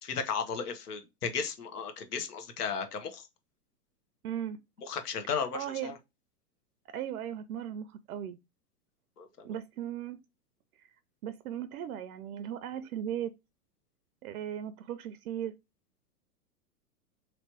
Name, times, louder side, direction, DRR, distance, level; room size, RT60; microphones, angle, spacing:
voice 1, 0.0-3.3 4.9-6.0 9.2-9.5, left 6 dB, 80° left, 0.9 m, -35 dB
voice 2, 4.2-4.6 5.5-6.0 6.9-8.4 9.4-10.2 11.2-13.3 14.2-15.5, right 10 dB, 70° right, 0.5 m, -37 dB
3.0 x 3.0 x 2.8 m
hypercardioid pair, 115°, 46 cm